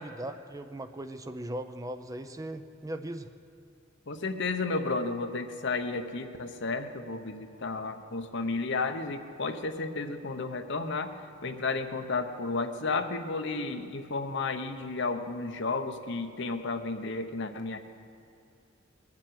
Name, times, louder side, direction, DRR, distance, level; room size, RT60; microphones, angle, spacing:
voice 1, 0.0-3.3, right 1 dB, 15° right, 9 dB, 0.5 m, -38 dB
voice 2, 4.1-11.1 11.4-17.8, left 3 dB, 60° left, 7 dB, 0.9 m, -32 dB
20.5 x 7.4 x 9.3 m, 2.5 s
head